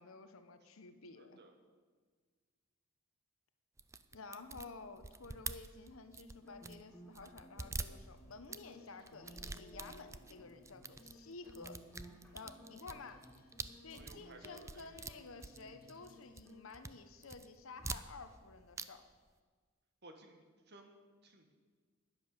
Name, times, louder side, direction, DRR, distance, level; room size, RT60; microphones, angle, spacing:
voice 1, 0.0-1.4 4.1-11.8 12.3-13.2 13.8-19.0, left 4 dB, 70° left, 9 dB, 0.9 m, -52 dB
voice 2, 1.1-1.5 13.9-15.2 20.0-21.5, right 2 dB, 55° right, 4 dB, 1.6 m, -59 dB
sound 1, 3.8-6.9 7.2-8.6 9.1-10.3 10.7-11.2 11.5-16.1 16.4-16.9 17.2-18.5 18.7-18.9 19.1-19.2, right 4 dB, 15° right, 0.4 m, -46 dB
sound 2, 6.2-16.6, left 1 dB, 10° left, 2.1 m, -58 dB
sound 3, 7.9-16.5, left 2 dB, 45° left, 1.8 m, -72 dB
10.5 x 10.0 x 6.6 m, 1.5 s
head